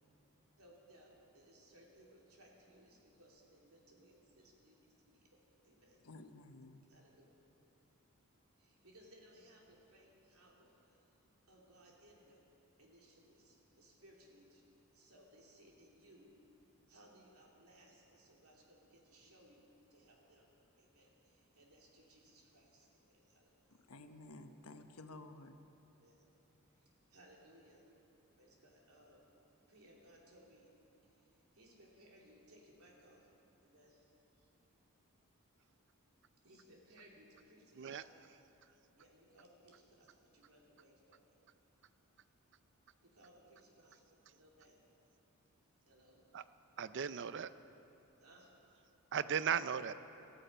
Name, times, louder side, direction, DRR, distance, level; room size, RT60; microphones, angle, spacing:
voice 1, 0.6-6.0 6.8-7.3 8.6-11.1 11.5-12.5 12.8-14.6 14.9-16.3 16.9-20.5 20.8-23.7 26.0-26.2 26.7-27.8 28.4-29.2 29.7-30.7 31.0-33.3 33.6-34.5 36.4-38.1 39.0-41.3 43.0-44.8 45.9-46.2 48.2-48.5, right 1 dB, 80° right, 3.0 m, -64 dB
voice 2, 6.1-6.9 23.9-25.6, left 2 dB, 85° left, 1.0 m, -53 dB
voice 3, 46.8-47.5 49.1-49.9, right 7 dB, 55° right, 0.5 m, -36 dB
18.0 x 14.0 x 5.6 m
head